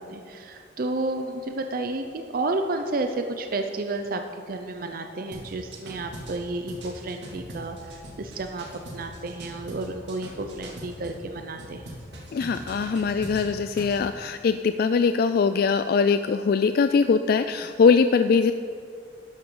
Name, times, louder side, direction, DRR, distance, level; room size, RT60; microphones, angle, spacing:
voice 1, 0.0-8.7 8.9-12.0, right 2 dB, 55° right, 5 dB, 0.6 m, -31 dB
sound 1, 5.3-11.2 11.6-14.0, right 1 dB, 70° right, 2.3 m, -41 dB
voice 2, 12.3-18.5, left 5 dB, 60° left, 10 dB, 0.3 m, -22 dB
13.0 x 10.5 x 3.9 m, 2.4 s
head